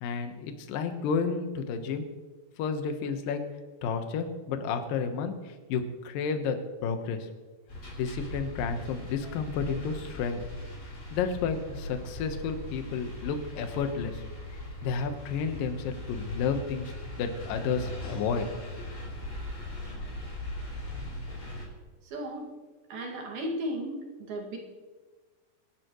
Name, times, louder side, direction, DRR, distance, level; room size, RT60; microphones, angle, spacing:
voice 1, 0.0-2.1 2.6-3.5 3.8-7.3 8.0-10.4 11.1-14.2 14.8-16.9 17.2-18.5 18.8-18.9, left 5 dB, 65° left, 6 dB, 2.6 m, -31 dB
sound 1, 7.7-21.7, left 1 dB, 20° left, 4.7 m, -39 dB
voice 2, 22.0-22.5 22.9-24.6, equal, 65° right, 0 dB, 3.8 m, -35 dB
26.0 x 11.5 x 3.1 m, 1.3 s
omnidirectional pair, 4.9 m